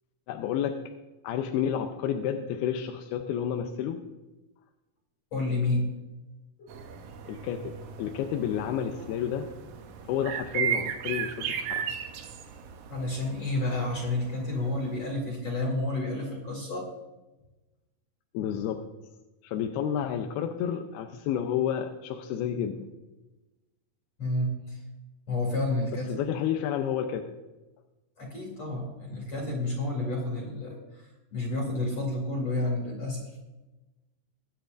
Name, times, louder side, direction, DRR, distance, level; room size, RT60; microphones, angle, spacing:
voice 1, 0.3-0.8 1.2-4.0 7.3-7.7 8.0-9.5 10.1-11.8 18.3-18.8 19.4-22.9 26.1-27.3, left 9 dB, 85° left, 4 dB, 2.7 m, -30 dB
voice 2, 5.3-5.9 6.6-6.8 12.9-16.9 24.2-24.8 25.3-26.3 28.2-33.4, left 2 dB, 40° left, -1 dB, 3.3 m, -30 dB
sound 1, 6.7-15.1, right 8 dB, 70° right, 1.9 m, -36 dB
23.5 x 9.6 x 2.6 m, 1.1 s
omnidirectional pair, 4.4 m